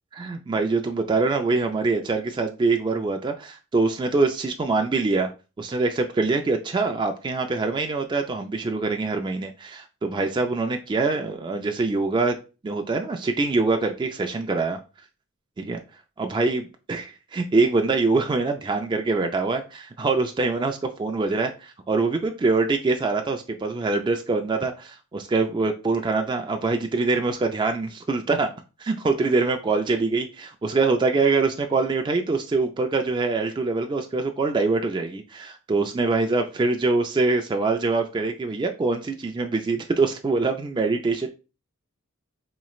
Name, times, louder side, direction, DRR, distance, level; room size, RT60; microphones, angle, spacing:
voice 1, 0.1-5.3 5.6-12.4 12.6-14.8 15.6-15.8 16.2-28.5 28.8-41.3, right 3 dB, 20° right, 0.3 m, -24 dB
4.1 x 3.0 x 2.3 m
head